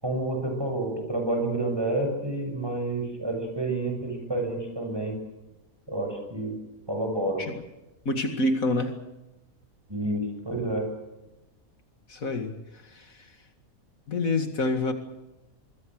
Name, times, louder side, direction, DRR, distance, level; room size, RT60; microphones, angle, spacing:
voice 1, 0.0-5.2 5.9-6.6 6.9-7.4 9.9-10.9, right 2 dB, 15° right, 3 dB, 7.7 m, -29 dB
voice 2, 8.1-8.9 12.1-12.5 12.8-13.3 14.1-14.9, left 2 dB, 70° left, 6 dB, 2.5 m, -27 dB
24.5 x 23.5 x 6.5 m, 0.98 s
omnidirectional pair, 1.5 m